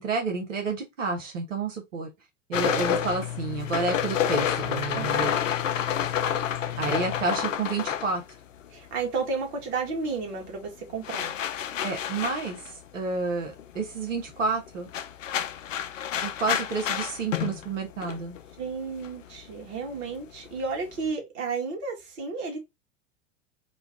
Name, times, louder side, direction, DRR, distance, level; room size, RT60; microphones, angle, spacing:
voice 1, 0.0-2.1 2.5-5.3 6.8-8.2 11.8-14.9 16.2-18.4, right 4 dB, 80° right, 1.3 m, -30 dB
sound 1, 2.5-9.2 9.5-21.1, left 9 dB, 80° left, 0.5 m, -30 dB
voice 2, 4.9-5.4 8.7-11.3 18.6-22.6, right 4 dB, 60° right, 1.8 m, -32 dB
3.9 x 2.3 x 3.5 m
figure-of-eight pair, 85°, 38 cm